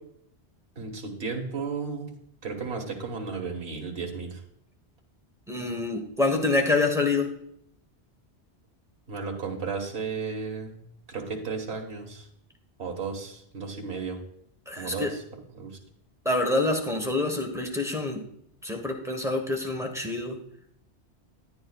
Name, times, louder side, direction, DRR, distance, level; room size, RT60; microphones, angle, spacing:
voice 1, 0.8-2.1 2.4-4.4 9.1-10.8 11.1-12.3 12.8-14.2 14.8-15.8, right 5 dB, 70° right, 1 dB, 1.6 m, -34 dB
voice 2, 5.5-7.3 14.7-15.1 16.2-18.2 18.6-20.4, left 2 dB, 5° right, 2 dB, 1.1 m, -26 dB
12.5 x 9.6 x 2.4 m, 0.70 s
omnidirectional pair, 1.1 m